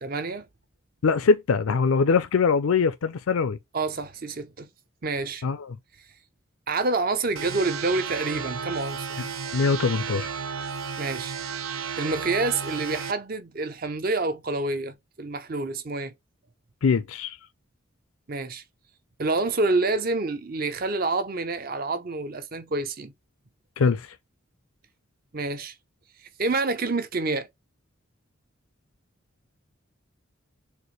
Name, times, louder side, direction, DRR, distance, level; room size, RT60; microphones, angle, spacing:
voice 1, 0.0-0.5 3.7-4.7 5.0-5.4 6.7-9.1 11.0-11.3 12.0-16.1 18.3-18.6 19.2-23.1 25.3-25.7 26.4-27.5, right 3 dB, 45° right, 0.6 m, -27 dB
voice 2, 1.0-3.6 5.4-5.8 9.5-10.3 16.8-17.4 23.8-24.1, left 5 dB, 90° left, 0.5 m, -22 dB
sound 1, 7.4-13.1, right 6 dB, 85° right, 0.7 m, -33 dB
6.5 x 2.5 x 3.1 m
head